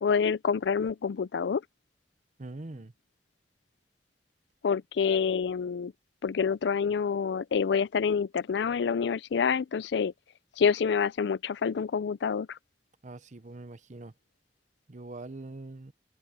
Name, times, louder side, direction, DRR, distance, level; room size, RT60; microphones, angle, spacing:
voice 1, 0.0-1.6 4.6-5.9 6.2-10.1 10.6-12.6, left 6 dB, 80° left, 0.4 m, -27 dB
voice 2, 2.4-2.9 13.0-14.1 14.9-15.9, right 2 dB, 45° right, 0.8 m, -43 dB
head